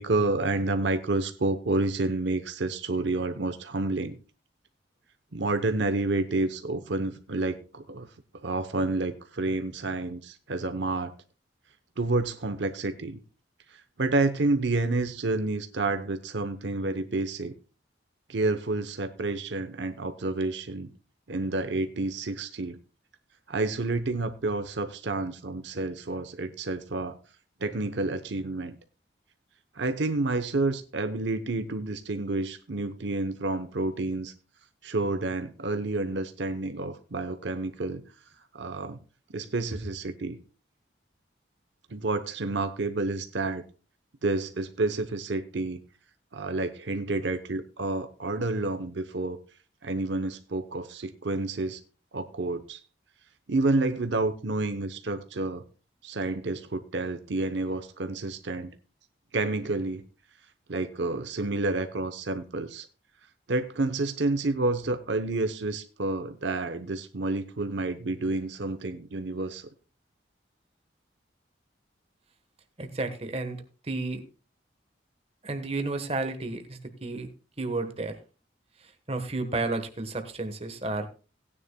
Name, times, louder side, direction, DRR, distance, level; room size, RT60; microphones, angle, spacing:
voice 1, 0.0-4.2 5.3-8.1 8.4-11.1 12.0-13.2 13.7-17.5 18.3-20.9 21.3-22.8 23.5-27.2 27.6-28.8 29.7-34.3 34.8-38.0 38.5-39.0 39.3-40.4 41.9-43.6 44.2-45.8 46.3-49.4 49.8-51.8 52.1-52.8 53.5-55.6 56.0-58.7 59.3-60.0 60.7-62.9 63.5-69.7, right 2 dB, 70° right, 9 dB, 0.8 m, -29 dB
voice 2, 72.8-74.2 75.4-77.3 77.6-78.1 79.1-81.1, right 2 dB, 30° right, 7 dB, 1.2 m, -32 dB
17.5 x 9.7 x 2.2 m, 0.34 s
head